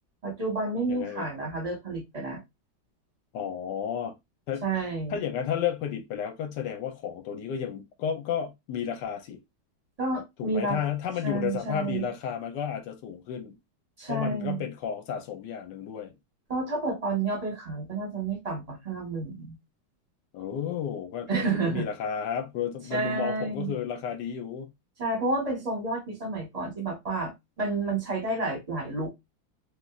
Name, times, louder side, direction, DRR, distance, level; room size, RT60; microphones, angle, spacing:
voice 1, 0.2-2.4 4.6-5.2 10.0-10.8 11.2-12.1 14.0-14.6 16.5-19.5 21.3-21.8 22.9-23.7 25.0-27.3 27.6-29.1, right 3 dB, 25° right, 1.1 m, -30 dB
voice 2, 0.9-1.3 3.3-4.1 4.5-4.7 5.1-9.4 10.4-13.6 14.1-16.1 20.3-24.7, left 8 dB, 70° left, 1.1 m, -32 dB
3.3 x 2.6 x 2.3 m
omnidirectional pair, 2.2 m